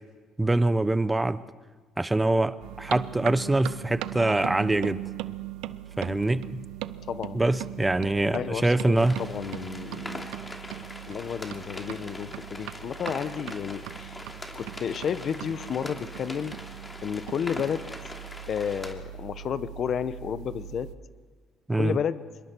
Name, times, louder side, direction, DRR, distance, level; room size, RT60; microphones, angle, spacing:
voice 1, 0.4-1.4 2.0-5.0 6.0-6.6 7.3-9.2 21.7-22.0, right 2 dB, 15° right, 15 dB, 0.8 m, -24 dB
sound 1, 2.6-20.9, right 14 dB, 80° right, 0.6 m, -39 dB
voice 2, 7.1-7.4 8.3-10.3 11.1-14.2 14.5-16.5 17.0-17.9 18.5-20.9 21.7-22.2, left 8 dB, 55° left, 14 dB, 1.0 m, -32 dB
sound 2, 9.0-18.9, left 1 dB, 15° left, 2.8 m, -42 dB
25.5 x 22.0 x 4.6 m, 1.5 s
supercardioid pair, 85°, 0 cm